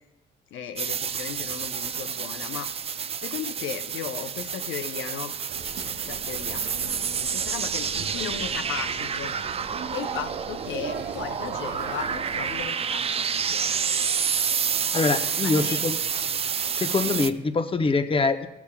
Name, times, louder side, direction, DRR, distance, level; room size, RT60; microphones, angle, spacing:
voice 1, 0.5-2.7 3.2-5.3 6.0-9.3 9.9-13.8 15.4-15.8, left 8 dB, 80° left, 7 dB, 0.8 m, -36 dB
sound 1, 0.8-17.3, right 7 dB, 30° right, 0.3 m, -29 dB
sound 2, 5.5-12.7, right 4 dB, 75° right, 1.1 m, -41 dB
voice 2, 14.9-16.0 16.7-18.5, left 3 dB, 25° left, 8 dB, 0.7 m, -24 dB
15.5 x 7.1 x 2.3 m, 1.0 s
cardioid pair, 90°, 20 cm